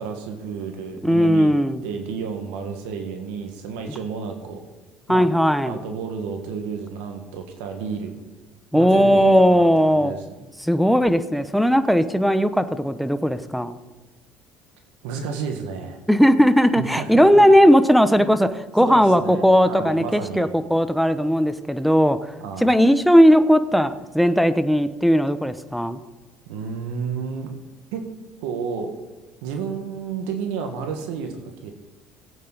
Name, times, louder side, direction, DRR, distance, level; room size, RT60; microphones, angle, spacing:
voice 1, 0.0-1.5 1.8-4.6 5.1-5.3 5.6-8.2 8.7-10.2 15.0-16.0 16.8-17.4 18.2-18.3 18.8-20.5 22.4-22.7 26.4-27.5 27.9-28.0 28.4-28.9 29.4-31.7, right 6 dB, 85° right, 5 dB, 1.7 m, -31 dB
voice 2, 1.0-1.8 5.1-5.8 8.7-10.1 10.6-13.8 16.1-22.2 22.6-26.0, equal, ahead, 12 dB, 0.9 m, -17 dB
17.0 x 8.7 x 4.1 m, 1.1 s
supercardioid pair, 85°, 4 cm